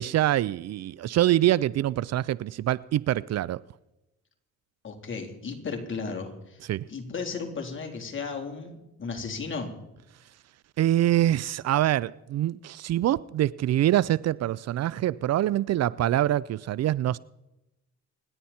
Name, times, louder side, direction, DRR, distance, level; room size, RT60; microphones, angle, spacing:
voice 1, 0.0-3.6 6.7-6.8 10.8-17.2, right 13 dB, 60° right, 0.5 m, -25 dB
voice 2, 4.8-9.7, left 4 dB, 40° left, 3.8 m, -35 dB
27.0 x 11.0 x 4.4 m
cardioid pair, 90°, 30 cm